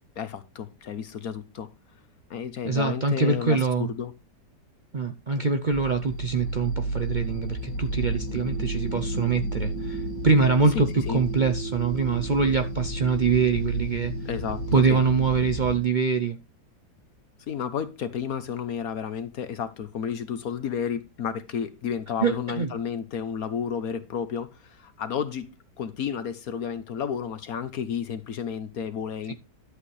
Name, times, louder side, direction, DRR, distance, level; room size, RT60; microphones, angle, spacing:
voice 1, 0.2-1.7 2.3-4.1 10.7-11.2 14.2-15.0 17.5-25.5 25.8-29.3, left 7 dB, 60° left, 1.2 m, -32 dB
voice 2, 2.6-3.9 4.9-14.1 14.7-16.4 22.2-22.7 29.3-29.4, right 4 dB, 70° right, 0.4 m, -24 dB
sound 1, 5.7-15.8, right 1 dB, 85° left, 2.7 m, -31 dB
12.0 x 8.0 x 3.2 m
omnidirectional pair, 1.8 m